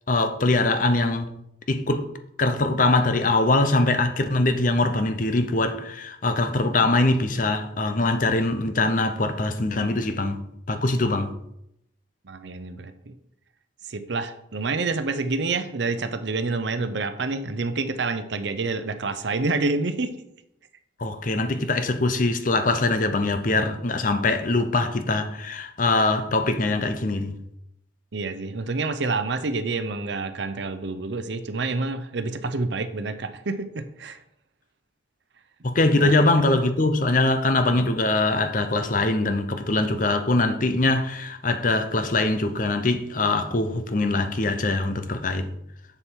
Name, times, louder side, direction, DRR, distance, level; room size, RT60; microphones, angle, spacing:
voice 1, 0.1-1.3 1.7-2.1 2.4-10.4 10.7-11.3 21.0-27.4 35.6-45.5, left 2 dB, 45° left, 0.7 m, -22 dB
voice 2, 12.2-13.2 13.9-20.2 28.1-34.2 36.0-36.1 37.7-37.9, right 3 dB, 65° right, 0.7 m, -28 dB
7.0 x 6.8 x 4.6 m
head